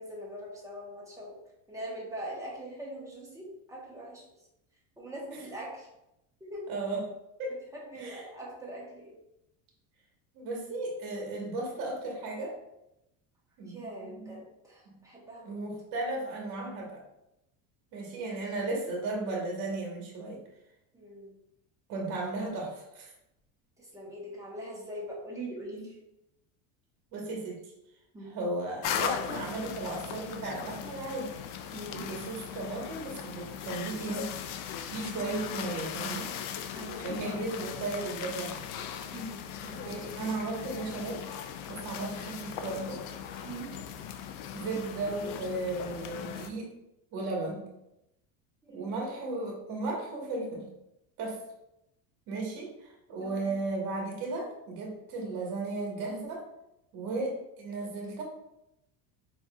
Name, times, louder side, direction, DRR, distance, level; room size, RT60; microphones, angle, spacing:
voice 1, 0.0-1.4 1.7-4.5 5.0-5.9 6.4-6.7 7.7-9.2 13.7-15.6 20.9-21.3 23.8-26.0 28.1-28.3 31.7-32.3 36.7-37.4 39.1-39.4 43.4-43.7 48.6-48.9 53.2-53.6, right 1 dB, 10° right, -4 dB, 1.1 m, -42 dB
voice 2, 6.7-7.0 7.4-7.6 8.0-8.2 10.3-12.6 13.6-14.3 14.9-15.0 15.5-17.0 17.9-20.4 21.9-23.1 27.1-27.6 28.2-31.3 31.9-34.3 34.8-36.3 37.0-38.7 39.6-41.2 41.7-43.0 44.5-46.7 47.1-47.6 48.7-50.7 51.2-51.4 52.3-56.4 56.9-58.2, right 2 dB, 55° right, -1 dB, 1.1 m, -35 dB
sound 1, 28.8-46.5, left 8 dB, 65° left, 0.5 m, -38 dB
4.4 x 2.9 x 2.3 m, 0.87 s
supercardioid pair, 120°, 42 cm